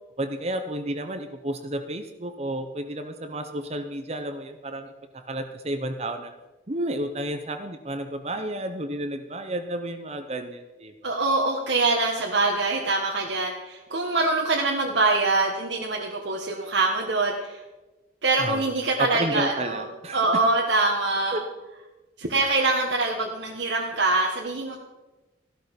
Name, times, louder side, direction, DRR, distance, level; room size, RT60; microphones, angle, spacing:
voice 1, 0.2-4.9 5.3-6.3 6.7-11.2 18.4-18.7 19.0-20.2 21.3-21.4, right 1 dB, 35° right, 7 dB, 0.9 m, -31 dB
voice 2, 11.0-17.6 18.2-19.9 20.1-21.4 22.2-24.8, right 3 dB, 70° right, 0 dB, 1.5 m, -24 dB
15.0 x 12.0 x 5.3 m, 1.1 s
head